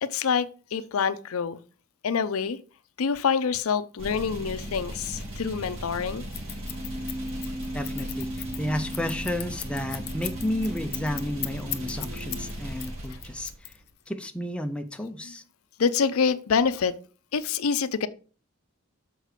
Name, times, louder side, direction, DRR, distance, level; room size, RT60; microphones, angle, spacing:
voice 1, 0.0-1.6 2.0-2.6 3.0-6.2 15.8-17.0 17.3-18.1, left 6 dB, 85° left, 0.5 m, -26 dB
sound 1, 4.0-13.8, equal, 70° right, 1.9 m, -37 dB
Scissors, 6.3-12.5 12.8-14.1, left 14 dB, 50° left, 0.7 m, -36 dB
Keyboard (musical), 6.6-12.6, right 1 dB, 20° right, 1.7 m, -38 dB
voice 2, 7.7-8.3 8.6-13.7 14.1-15.4, left 1 dB, 5° left, 0.5 m, -32 dB
6.5 x 4.6 x 4.9 m
head